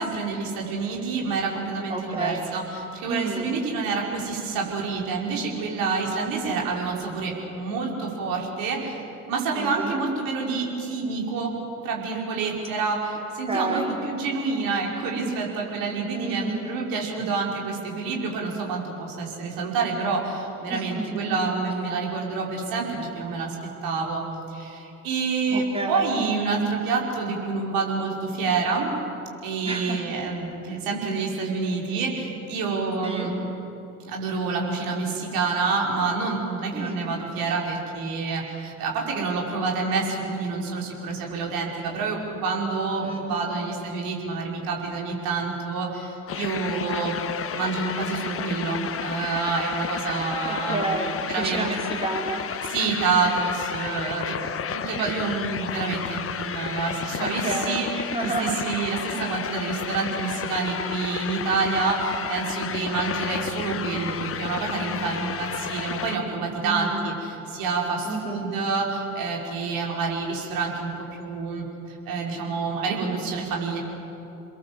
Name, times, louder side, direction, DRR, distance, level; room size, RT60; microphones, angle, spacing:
voice 1, 0.0-9.0 9.3-11.5 11.8-23.6 23.8-28.9 29.4-33.3 34.0-47.2 47.5-51.0 51.3-51.7 52.7-54.4 54.7-57.9 58.2-70.9 71.2-73.8, right 4 dB, 50° right, -1 dB, 5.4 m, -28 dB
voice 2, 1.9-2.5 3.1-3.5 9.6-10.0 13.5-14.0 16.1-16.8 20.7-21.5 25.5-26.1 29.6-30.0 33.0-33.3 36.7-37.0 43.0-43.6 50.5-52.4 57.2-58.6 66.6-67.1 68.0-68.5, right 2 dB, 15° right, -1 dB, 5.0 m, -30 dB
sound 1, 46.3-66.2, left 7 dB, 30° left, 1.4 m, -32 dB
28.5 x 21.5 x 7.8 m, 2.9 s
figure-of-eight pair, 60°, 43 cm